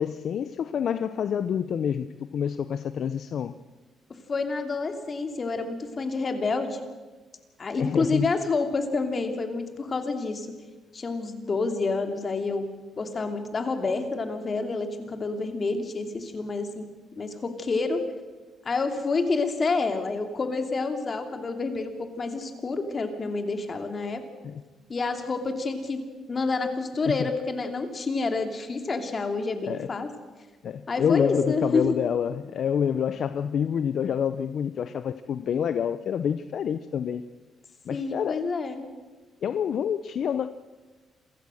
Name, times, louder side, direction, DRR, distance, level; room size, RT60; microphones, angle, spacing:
voice 1, 0.0-2.1 2.3-3.5 7.8-8.3 24.4-24.6 27.1-27.3 29.7-29.9 30.6-37.2 37.9-38.4 39.4-40.5, left 8 dB, 60° left, 12 dB, 0.7 m, -27 dB
voice 2, 4.3-6.8 7.6-10.5 10.9-12.7 13.0-16.9 17.2-18.0 18.6-24.2 24.9-26.0 26.3-30.1 30.9-32.0 37.9-38.9, left 3 dB, 35° left, 6 dB, 2.9 m, -28 dB
27.5 x 15.5 x 6.5 m, 1.3 s
cardioid pair, 90°, 0 cm